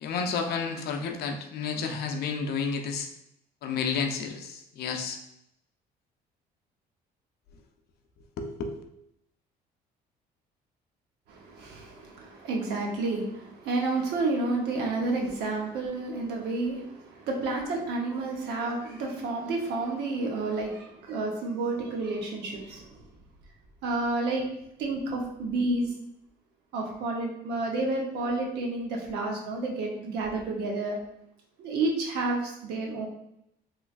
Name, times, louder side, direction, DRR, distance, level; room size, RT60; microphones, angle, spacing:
voice 1, 0.0-3.1 3.6-5.2 8.4-8.8, left 5 dB, 70° left, 4 dB, 0.5 m, -31 dB
voice 2, 11.3-23.0 23.8-24.4 24.8-25.9 26.7-31.0 31.6-33.1, right 2 dB, 80° right, 0 dB, 0.9 m, -30 dB
3.1 x 3.0 x 2.4 m, 0.78 s
cardioid pair, 110°, 17 cm